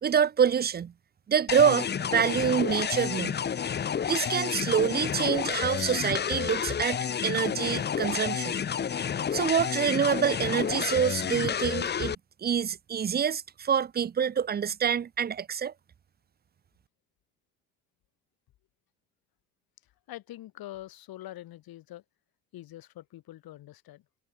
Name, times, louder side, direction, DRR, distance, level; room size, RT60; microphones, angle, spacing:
voice 1, 0.0-0.9 1.3-3.4 4.1-8.6 9.3-12.1 12.4-15.7, right 7 dB, 25° right, 0.6 m, -26 dB
sound 1, 1.5-12.1, left 8 dB, 25° left, 0.8 m, -30 dB
voice 2, 20.1-22.0 22.5-24.0, left 14 dB, 60° left, 7.0 m, -44 dB
hypercardioid pair, 60°, 41 cm